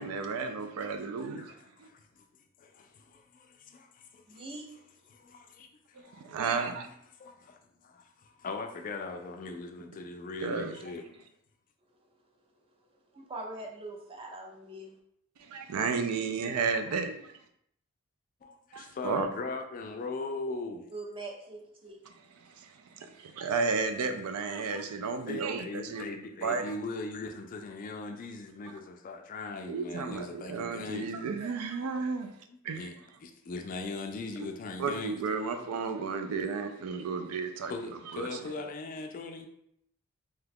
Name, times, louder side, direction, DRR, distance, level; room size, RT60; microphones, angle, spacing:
voice 1, 0.0-1.5 1.8-1.9 6.0-6.9 10.4-10.8 15.5-17.3 18.7-19.3 22.4-26.0 26.4-26.7 29.7-32.3 32.6-32.9 34.8-37.7 38.1-38.4, right 4 dB, 85° right, 7 dB, 0.4 m, -33 dB
voice 2, 1.3-2.0 2.6-4.4 5.1-5.7 6.0-6.4 7.2-11.0 18.4-20.9 25.3-31.1 32.5-32.9 33.2-35.1 37.7-39.5, left 3 dB, 40° left, 5 dB, 0.3 m, -40 dB
voice 3, 4.3-4.7 13.1-15.0 20.9-22.0, right 2 dB, 25° right, 0 dB, 0.5 m, -42 dB
2.8 x 2.3 x 3.4 m, 0.73 s
head